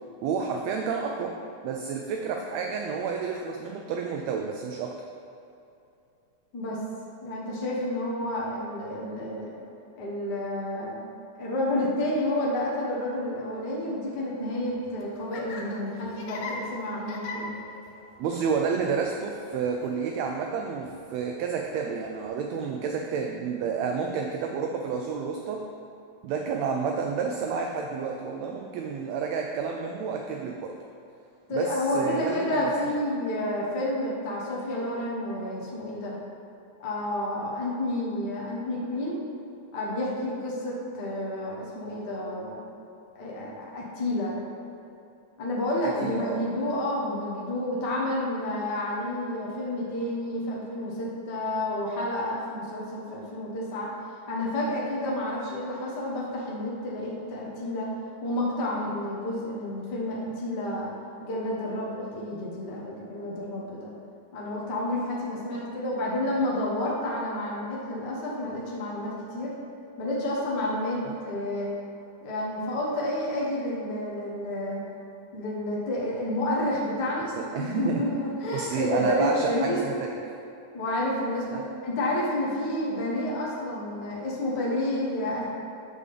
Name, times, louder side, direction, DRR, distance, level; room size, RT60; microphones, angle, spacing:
voice 1, 0.2-1.4 1.6-5.0 18.2-25.7 26.2-30.8 31.5-33.0 45.8-46.4 71.1-71.2 77.4-78.0 78.5-80.2 81.4-81.7, right 5 dB, 80° right, 2 dB, 1.6 m, -30 dB
voice 2, 7.2-9.6 10.0-11.0 11.4-17.6 31.5-36.2 36.8-39.2 39.7-42.6 43.1-44.4 45.4-53.9 54.3-57.9 58.2-60.9 61.2-63.9 64.3-69.6 70.0-71.7 72.2-74.8 75.3-77.3 77.6-79.8 80.7-85.5, left 1 dB, 45° left, -5 dB, 1.5 m, -30 dB
Laughter, 14.7-22.3, left 3 dB, 90° left, 2.4 m, -43 dB
9.8 x 3.7 x 6.8 m, 2.7 s
omnidirectional pair, 3.4 m